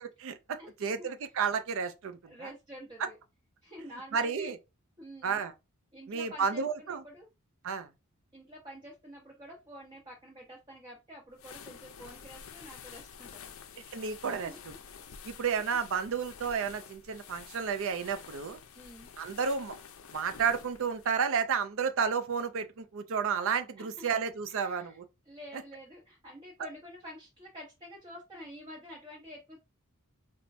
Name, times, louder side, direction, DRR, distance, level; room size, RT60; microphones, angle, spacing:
voice 1, 0.0-2.5 4.1-4.6 5.2-5.5 6.1-7.0 7.6-7.9 13.9-14.7 15.2-18.6 19.2-19.7 20.1-25.0, right 6 dB, 65° right, 0.4 m, -32 dB
voice 2, 0.6-1.1 2.2-3.2 3.6-4.5 5.0-5.4 5.9-7.3 8.3-13.5 14.5-14.7 18.7-19.1 23.8-24.1 24.5-25.0 25.3-29.6, equal, 20° right, 0.7 m, -48 dB
sound 1, 11.3-21.2, left 7 dB, 65° left, 0.5 m, -49 dB
4.3 x 2.1 x 2.5 m
head